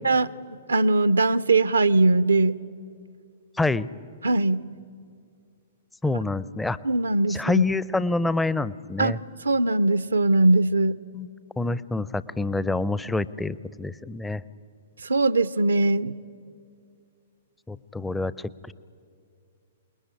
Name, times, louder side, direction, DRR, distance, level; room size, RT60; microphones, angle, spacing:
voice 1, 0.7-2.6 4.2-4.6 6.8-7.6 9.0-9.2 9.5-11.0 15.0-16.2, right 2 dB, 70° right, 16 dB, 0.6 m, -21 dB
voice 2, 3.6-3.9 6.0-6.8 7.3-9.2 11.1-11.3 11.6-14.4 17.7-18.7, left 2 dB, 5° left, 18 dB, 0.6 m, -27 dB
27.5 x 20.0 x 10.0 m, 2.3 s
figure-of-eight pair, 110°, 0 cm